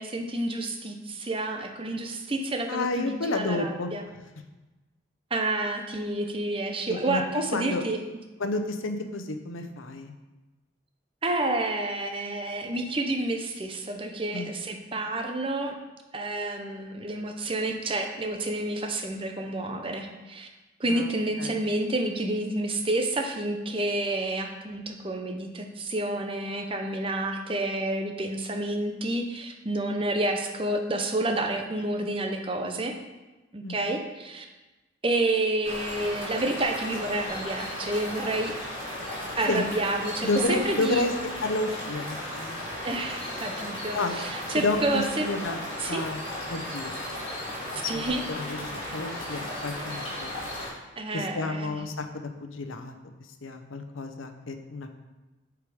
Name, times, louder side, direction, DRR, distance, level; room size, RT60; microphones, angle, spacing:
voice 1, 0.0-4.0 5.3-8.0 11.2-15.8 16.1-20.5 20.8-32.9 33.5-34.4 35.0-38.5 39.4-41.0 42.8-45.3 45.8-46.0 47.7-48.2 51.0-51.8, right 2 dB, 25° right, 4 dB, 0.7 m, -29 dB
voice 2, 2.7-3.9 6.9-7.2 7.5-7.8 8.4-10.1 14.3-14.6 20.9-21.1 21.4-21.7 33.6-33.8 39.5-39.6 40.2-41.1 41.4-42.6 43.9-44.1 44.5-45.6 45.8-46.2 46.5-47.0 47.8-48.0 48.3-50.3 51.1-52.1 52.4-52.9 53.4-54.9, left 2 dB, 80° left, 7 dB, 0.8 m, -30 dB
sound 1, 35.6-50.7, left 1 dB, 25° left, 2.8 m, -35 dB
8.4 x 4.8 x 4.9 m, 1.1 s
head